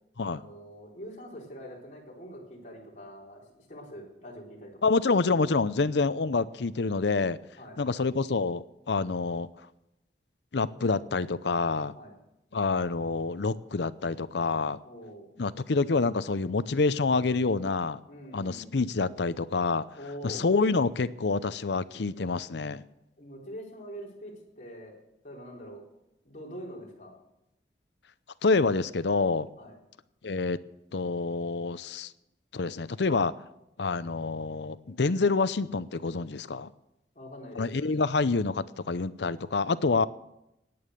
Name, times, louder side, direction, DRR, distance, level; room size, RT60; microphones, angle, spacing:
voice 1, 0.2-3.4 3.7-4.9 7.6-7.8 11.9-12.2 14.8-15.3 18.1-18.8 20.0-20.4 23.2-24.9 25.2-25.8 26.2-27.1 29.6-29.8 37.1-37.7, equal, 40° left, -3 dB, 4.3 m, -44 dB
voice 2, 4.8-7.4 7.8-9.5 10.5-11.9 12.5-14.8 15.4-18.0 18.3-19.9 20.2-22.8 28.4-29.5 30.2-30.6 30.9-32.1 32.5-33.3 33.8-36.7 37.6-40.1, left 4 dB, 75° left, 15 dB, 0.6 m, -27 dB
17.5 x 9.5 x 6.6 m, 0.87 s
head